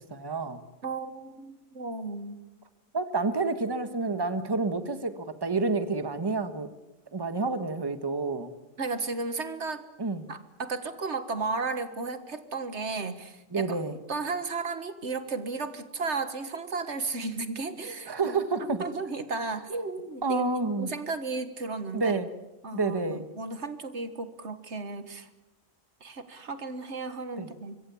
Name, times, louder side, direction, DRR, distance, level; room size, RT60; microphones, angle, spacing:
voice 1, 0.1-0.6 2.9-6.7 7.1-8.5 10.0-10.3 13.5-14.0 18.1-18.8 20.2-20.9 21.9-22.3 22.7-23.3 27.4-27.5, right 3 dB, 20° right, 10 dB, 1.3 m, -29 dB
voice 2, 0.8-2.4 8.8-9.8 10.3-13.8 14.1-20.5 20.8-22.2 22.6-25.3 26.0-27.8, right 3 dB, 80° right, 10 dB, 1.9 m, -34 dB
25.0 x 23.5 x 7.1 m, 1.0 s
omnidirectional pair, 1.2 m